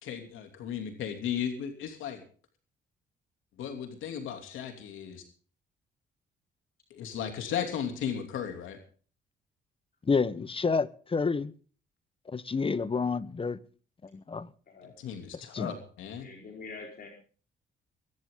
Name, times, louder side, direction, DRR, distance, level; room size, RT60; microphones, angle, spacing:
voice 1, 0.0-2.2 3.6-5.2 6.9-8.8 14.8-16.3, left 8 dB, 85° left, 2.9 m, -35 dB
voice 2, 10.0-11.5 12.3-13.6 14.0-14.5 15.3-15.7, left 4 dB, 25° left, 1.1 m, -29 dB
voice 3, 16.2-17.1, left 4 dB, 50° left, 4.6 m, -44 dB
23.0 x 12.0 x 3.8 m
cardioid pair, 90°, 20 cm